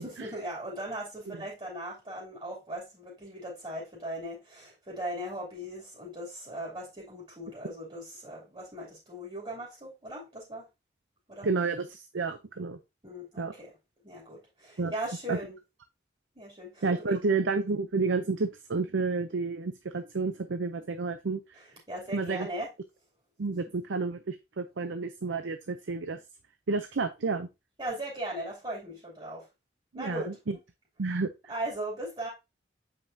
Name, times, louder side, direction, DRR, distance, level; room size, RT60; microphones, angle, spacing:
voice 1, 0.0-10.7 11.3-11.5 13.0-13.7 14.0-15.6 16.3-17.1 21.9-22.7 27.8-29.5 29.9-30.4 31.5-32.3, right 1 dB, 30° right, 2.8 m, -38 dB
voice 2, 11.4-12.8 13.4-13.5 14.8-14.9 15.3-15.4 16.8-21.6 22.1-22.5 23.4-26.2 26.7-27.5 29.9-30.6 31.0-31.3, right 4 dB, 90° right, 0.6 m, -30 dB
8.0 x 5.2 x 2.7 m
head